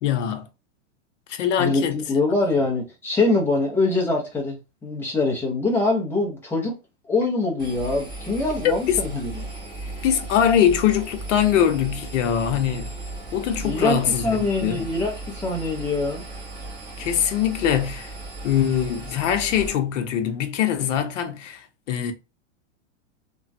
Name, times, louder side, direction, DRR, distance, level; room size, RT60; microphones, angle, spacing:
voice 1, 0.0-0.5 1.3-2.0 8.6-9.0 10.0-12.9 13.3-14.9 17.0-18.1 18.4-22.1, left 9 dB, 75° left, 0.7 m, -22 dB
voice 2, 1.6-6.7 7.1-9.3 13.6-16.2, left 2 dB, 5° left, 0.7 m, -24 dB
Engine, 7.6-19.7, right 2 dB, 10° right, 1.2 m, -36 dB
2.9 x 2.3 x 2.6 m
supercardioid pair, 150°, 37 cm